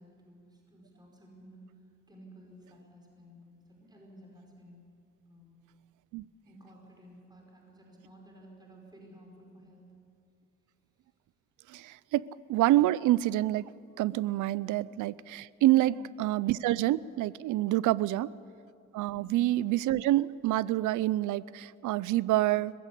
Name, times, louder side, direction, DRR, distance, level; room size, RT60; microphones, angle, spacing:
voice 1, 0.0-4.8 5.2-5.6 6.4-9.9 14.6-14.7 19.1-19.4, equal, 15° right, 0 dB, 5.0 m, -54 dB
voice 2, 11.7-13.7 14.0-15.9 16.2-18.3 18.9-22.7, right 15 dB, 80° right, 21 dB, 0.5 m, -27 dB
20.5 x 16.0 x 8.4 m, 2.4 s
cardioid pair, 90°, 30 cm